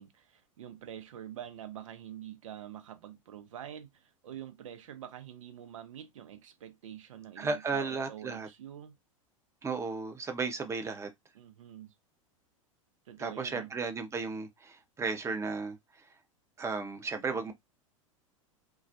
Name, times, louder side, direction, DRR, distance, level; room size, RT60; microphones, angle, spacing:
voice 1, 0.0-8.9 11.3-11.9 13.1-13.7, right 10 dB, 70° right, 0.6 m, -46 dB
voice 2, 7.4-8.5 9.6-11.1 13.2-15.8 16.6-17.5, right 4 dB, 15° right, 0.6 m, -34 dB
2.3 x 2.0 x 2.6 m
figure-of-eight pair, 90°, 17 cm